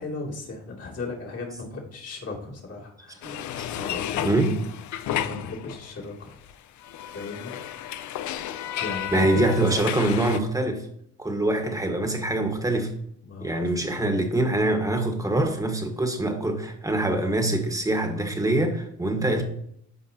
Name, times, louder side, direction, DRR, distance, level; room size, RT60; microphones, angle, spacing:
voice 1, 0.0-3.4 3.7-4.3 5.1-6.4 7.1-7.6 8.8-10.0 13.2-13.8, left 3 dB, 55° left, -3 dB, 3.0 m, -36 dB
sound 1, 3.2-6.0 6.3-10.4, left 11 dB, 75° left, 0.6 m, -33 dB
voice 2, 4.2-4.6 9.1-10.9 11.2-12.9 13.4-19.4, right 1 dB, 10° right, 4 dB, 1.5 m, -24 dB
13.5 x 5.3 x 2.9 m, 0.70 s
cardioid pair, 90°, 30 cm